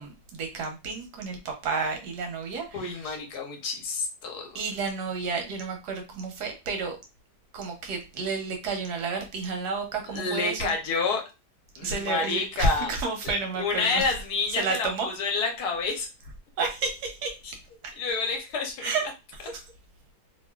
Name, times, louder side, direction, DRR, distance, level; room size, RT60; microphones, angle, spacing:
voice 1, 0.0-3.2 4.5-7.0 7.5-10.7 11.8-14.1 14.6-15.1 16.6-17.4 17.8-17.9 18.8-19.0 19.5-19.6, right 4 dB, 85° right, 1.3 m, -31 dB
voice 2, 2.7-4.6 10.1-11.2 11.8-12.9 13.5-16.1 17.4-17.6 18.0-18.9, left 4 dB, 85° left, 1.3 m, -29 dB
2.9 x 2.5 x 2.2 m
omnidirectional pair, 1.6 m